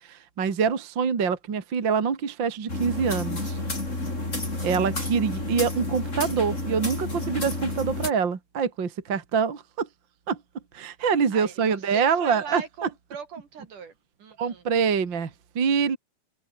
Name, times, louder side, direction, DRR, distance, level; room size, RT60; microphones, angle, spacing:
voice 1, 0.0-3.6 4.6-9.9 10.3-10.4 10.7-12.9 14.4-16.0, right 6 dB, 35° right, 2.3 m, -25 dB
sound 1, 2.7-8.1, left 2 dB, 15° left, 5.6 m, -30 dB
voice 2, 11.3-13.9 14.2-14.6, right 6 dB, 50° right, 4.2 m, -40 dB
open air
omnidirectional pair, 4.8 m